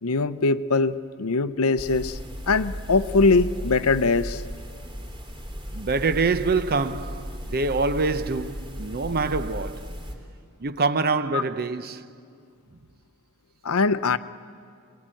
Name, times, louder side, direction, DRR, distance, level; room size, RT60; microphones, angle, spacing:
voice 1, 0.0-2.2 2.5-4.4 11.3-11.4 13.6-14.2, left 3 dB, 70° left, 0.7 m, -22 dB
sound 1, 1.8-10.1, equal, 20° right, 3.7 m, -35 dB
voice 2, 5.7-9.9 10.6-12.1, right 4 dB, 45° right, 0.8 m, -25 dB
26.0 x 22.0 x 9.1 m
head